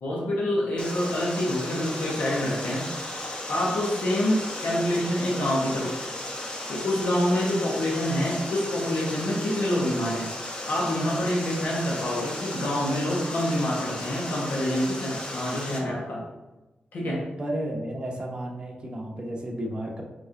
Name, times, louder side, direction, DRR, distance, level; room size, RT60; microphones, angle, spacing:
voice 1, 0.0-2.9 3.5-5.9 6.7-10.3 10.6-16.2 16.9-17.2, left 1 dB, 85° left, -5 dB, 1.2 m, -26 dB
Water, 0.8-15.8, left 1 dB, 30° left, 0.9 m, -35 dB
voice 2, 17.4-20.0, right 1 dB, 30° right, -1 dB, 0.9 m, -32 dB
4.6 x 4.5 x 2.6 m, 1.1 s
wide cardioid pair, 100°, 3 cm